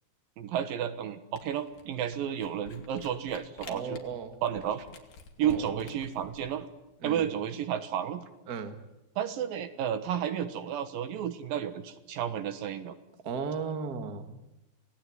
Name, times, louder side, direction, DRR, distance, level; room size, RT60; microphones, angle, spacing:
voice 1, 0.4-4.0 4.4-4.9 5.4-6.7 7.0-8.2 9.2-12.9, right 9 dB, 75° right, 10 dB, 3.0 m, -32 dB
Camera, 1.4-6.5, left 5 dB, 80° left, 4.2 m, -50 dB
voice 2, 3.7-4.4 5.4-5.6 7.0-7.2 8.5-8.8 13.2-14.4, right 5 dB, 40° right, 7 dB, 1.6 m, -35 dB
26.5 x 17.5 x 9.6 m, 0.96 s
omnidirectional pair, 4.1 m